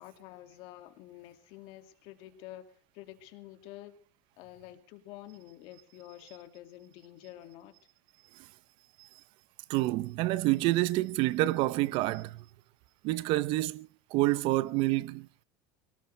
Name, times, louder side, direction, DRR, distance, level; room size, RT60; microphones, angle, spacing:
voice 1, 0.0-4.0 4.4-7.8, left 14 dB, 60° left, 2.3 m, -49 dB
voice 2, 9.7-12.4 13.0-15.4, right 18 dB, 55° right, 0.7 m, -28 dB
24.0 x 18.0 x 3.3 m
supercardioid pair, 120°, 10 cm